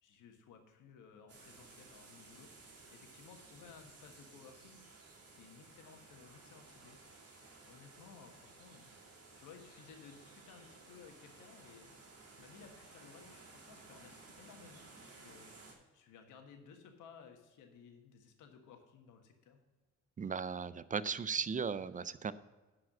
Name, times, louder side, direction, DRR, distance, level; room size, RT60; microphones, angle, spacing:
voice 1, 0.0-2.5 2.9-7.0 7.6-8.9 9.4-11.9 12.4-15.5 15.9-19.6, left 6 dB, 85° left, 4 dB, 1.6 m, -58 dB
sound 1, 1.3-15.7, right 3 dB, 55° right, 2.9 m, -57 dB
voice 2, 20.2-22.3, right 6 dB, 25° right, 16 dB, 0.4 m, -37 dB
10.5 x 4.9 x 6.0 m, 1.3 s
cardioid pair, 90°, 30 cm